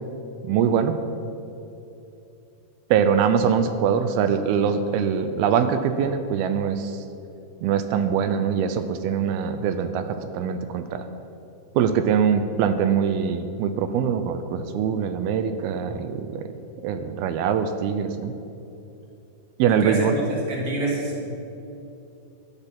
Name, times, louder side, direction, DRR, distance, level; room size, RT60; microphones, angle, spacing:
voice 1, 0.4-1.0 2.9-7.0 7.6-11.0 11.7-16.4 16.8-18.3 19.6-20.2, right 7 dB, 80° right, 9 dB, 2.5 m, -23 dB
voice 2, 19.7-21.3, right 2 dB, 40° right, -3 dB, 3.3 m, -27 dB
13.5 x 11.0 x 5.9 m, 2.8 s
omnidirectional pair, 4.6 m